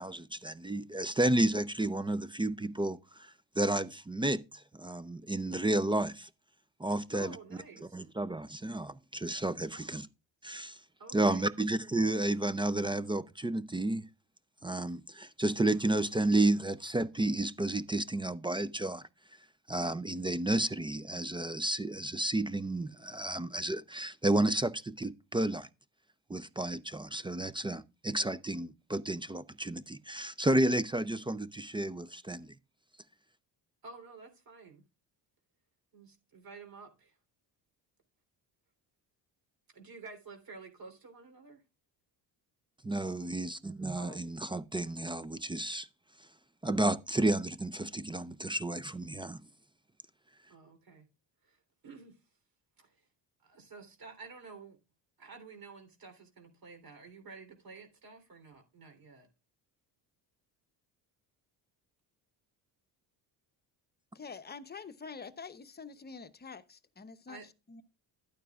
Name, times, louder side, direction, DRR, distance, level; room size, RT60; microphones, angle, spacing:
voice 1, 0.0-3.3 3.6-4.4 4.8-6.3 6.8-7.4 7.8-10.1 10.4-10.8 11.1-14.0 14.6-19.0 19.7-25.7 26.3-32.5 42.8-45.9 46.6-49.4, right 2 dB, 10° right, 0.4 m, -31 dB
voice 2, 7.1-8.0 9.7-10.0 11.0-11.5 33.8-34.8 35.9-37.1 39.7-41.6 43.9-44.3 50.5-51.0 51.4-51.6 51.8-52.1 52.8-52.9 53.4-54.8 55.2-59.3 67.3-67.5, right 4 dB, 50° right, 3.3 m, -51 dB
voice 3, 64.1-67.4 67.7-67.8, left 5 dB, 20° left, 0.8 m, -46 dB
12.0 x 9.1 x 2.4 m
cardioid pair, 85°, 45 cm